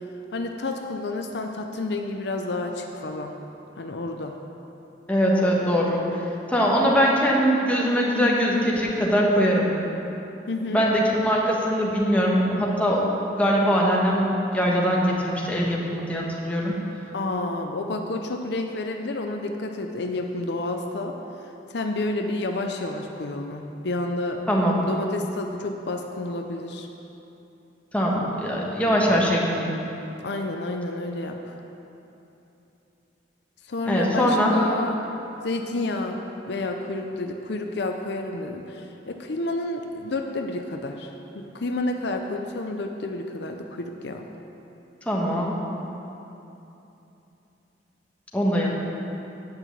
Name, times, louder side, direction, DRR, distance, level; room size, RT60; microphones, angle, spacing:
voice 1, 0.3-3.4 3.8-4.3 10.5-10.8 17.1-21.2 21.7-24.4 24.9-26.9 30.2-31.6 33.6-35.0 35.4-44.3, left 2 dB, 65° left, 4 dB, 0.6 m, -30 dB
voice 2, 5.1-6.2 6.5-9.7 10.7-13.0 13.4-16.7 24.5-24.8 27.9-29.7 33.9-34.6 45.1-45.5 48.3-48.7, equal, 10° left, -4 dB, 1.4 m, -22 dB
9.6 x 5.9 x 8.1 m, 3.0 s
head